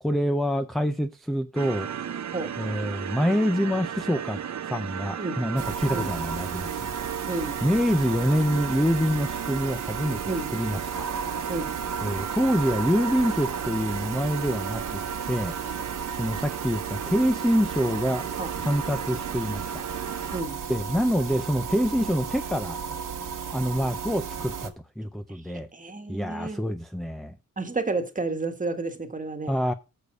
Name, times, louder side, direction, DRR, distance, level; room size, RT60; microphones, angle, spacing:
voice 1, 0.0-1.9 2.6-7.0 7.6-10.2 10.5-11.1 12.0-15.5 16.2-18.3 18.6-19.8 20.7-22.8 23.5-25.7 26.1-27.4 29.5-29.7, equal, ahead, 0.4 m, -26 dB
sound 1, 1.6-20.4, right 8 dB, 55° right, 0.7 m, -36 dB
sound 2, 5.6-24.7, right 6 dB, 75° right, 1.3 m, -34 dB
voice 2, 7.2-7.6 10.3-10.5 11.5-11.7 18.4-18.5 20.3-20.6 25.7-26.7 27.6-29.6, right 3 dB, 25° right, 1.4 m, -31 dB
6.9 x 6.4 x 6.2 m
wide cardioid pair, 160°, 33 cm